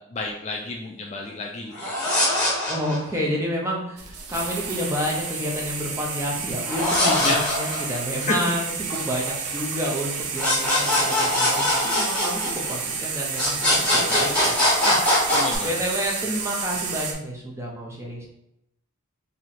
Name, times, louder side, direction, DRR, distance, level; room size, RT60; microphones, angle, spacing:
voice 1, 0.0-2.5 7.0-7.5 8.2-8.3 15.3-15.7, left 3 dB, 30° left, 0 dB, 0.3 m, -30 dB
sound 1, 1.7-3.2 6.6-8.2 10.4-12.9 13.3-15.6, left 1 dB, 5° left, 1.1 m, -22 dB
voice 2, 2.7-13.7 13.9-14.5 14.8-15.0 15.6-18.3, equal, 10° right, -3 dB, 0.7 m, -29 dB
sound 2, 4.0-17.1, right 5 dB, 90° right, 0.6 m, -30 dB
3.1 x 2.7 x 4.1 m, 0.82 s
head